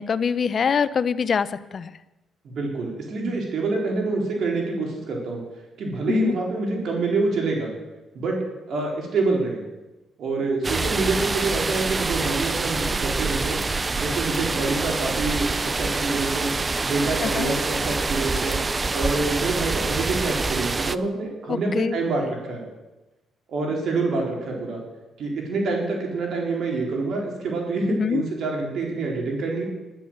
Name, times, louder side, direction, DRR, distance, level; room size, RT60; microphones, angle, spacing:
voice 1, 0.0-1.9 6.1-6.4 17.2-17.5 21.5-22.0 27.9-28.2, left 6 dB, 50° left, 15 dB, 0.7 m, -24 dB
voice 2, 2.4-5.4 5.8-7.7 8.1-8.4 8.7-9.6 10.2-13.6 14.0-16.5 16.8-18.6 18.9-22.6 23.5-24.8 25.2-29.6, right 3 dB, 65° right, -1 dB, 4.0 m, -26 dB
sound 1, 10.6-21.0, right 3 dB, 25° right, 0.5 m, -26 dB
11.5 x 11.5 x 7.5 m, 1.0 s
cardioid pair, 90°, 0 cm